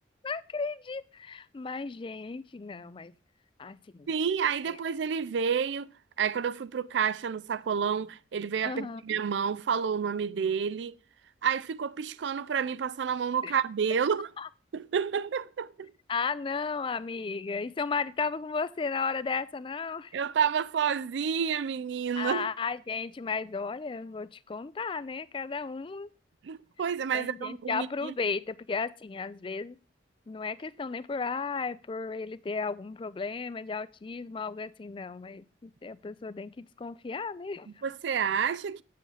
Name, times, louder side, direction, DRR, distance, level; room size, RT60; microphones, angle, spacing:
voice 1, 0.2-3.1 3.6-4.1 8.6-9.2 13.4-13.5 14.4-14.5 16.1-20.1 22.2-26.1 27.1-29.8 30.3-37.7, left 4 dB, 25° left, 0.3 m, -34 dB
voice 2, 4.1-5.9 6.2-11.0 11.4-14.3 14.7-15.9 20.1-22.5 26.4-28.1 37.8-38.8, right 7 dB, 70° right, 0.4 m, -29 dB
8.5 x 7.7 x 3.3 m
head